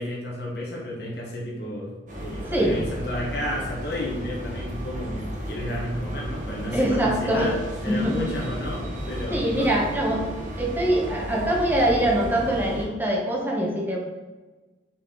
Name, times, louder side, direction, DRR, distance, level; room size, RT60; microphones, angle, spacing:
voice 1, 0.0-9.7, left 1 dB, 60° left, -4 dB, 1.5 m, -32 dB
sound 1, 2.1-12.8, equal, 45° right, 1.4 m, -34 dB
voice 2, 6.7-8.2 9.3-10.2 10.6-14.0, right 1 dB, 10° right, -2 dB, 1.2 m, -23 dB
6.5 x 4.3 x 3.9 m, 1.2 s
head